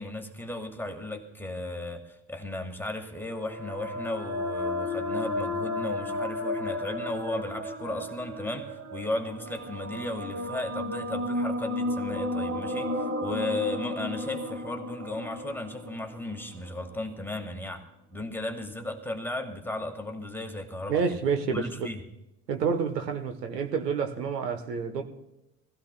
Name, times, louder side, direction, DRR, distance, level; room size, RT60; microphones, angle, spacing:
voice 1, 0.0-21.2 21.5-22.0, left 2 dB, 5° left, 1.5 m, -35 dB
sound 1, 3.3-16.9, left 1 dB, 30° right, 1.7 m, -33 dB
voice 2, 20.9-21.9 22.5-25.0, right 5 dB, 80° right, 1.1 m, -28 dB
23.0 x 16.0 x 2.2 m
figure-of-eight pair, 65°, 48 cm